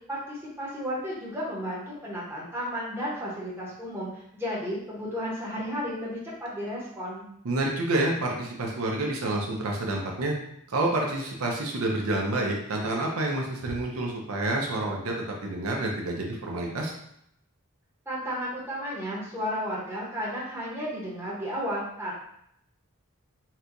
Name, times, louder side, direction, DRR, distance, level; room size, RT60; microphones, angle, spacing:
voice 1, 0.1-7.3 18.1-22.1, equal, 10° right, -7 dB, 0.9 m, -33 dB
voice 2, 7.4-10.3 10.7-15.1 15.4-16.9, right 2 dB, 75° right, 0 dB, 0.6 m, -28 dB
4.2 x 2.2 x 2.6 m, 0.73 s
head